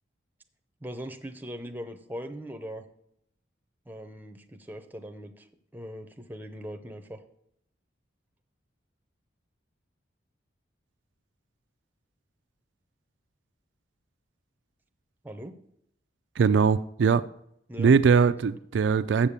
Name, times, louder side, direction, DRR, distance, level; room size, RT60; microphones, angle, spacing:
voice 1, 0.8-2.8 3.9-5.5 5.7-7.2 15.2-15.6 17.7-18.0, equal, 10° right, 0.6 m, -40 dB
voice 2, 16.4-17.2 17.8-19.3, right 5 dB, 70° right, 0.3 m, -21 dB
7.3 x 6.8 x 7.3 m
head